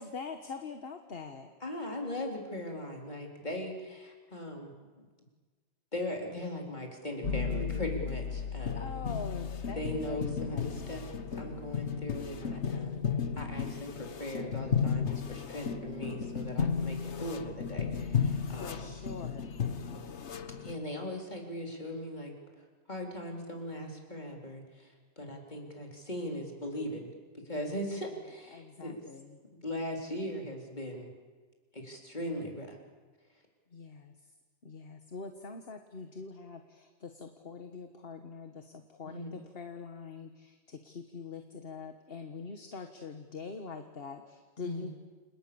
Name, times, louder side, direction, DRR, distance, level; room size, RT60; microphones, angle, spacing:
voice 1, 0.0-1.5 8.7-10.9 18.4-19.5 28.5-29.4 33.7-34.3 34.6-44.9, left 4 dB, 55° left, 6 dB, 1.7 m, -44 dB
voice 2, 1.6-5.1 5.9-8.9 9.7-11.0 11.3-13.0 13.4-18.8 20.6-27.1 27.3-29.0 29.6-31.1 31.7-32.8 39.0-39.4 44.6-44.9, left 1 dB, 40° left, 1 dB, 4.2 m, -39 dB
sound 1, 7.2-20.8, left 6 dB, 75° left, 1.5 m, -34 dB
29.5 x 27.5 x 7.1 m, 1.4 s
omnidirectional pair, 1.2 m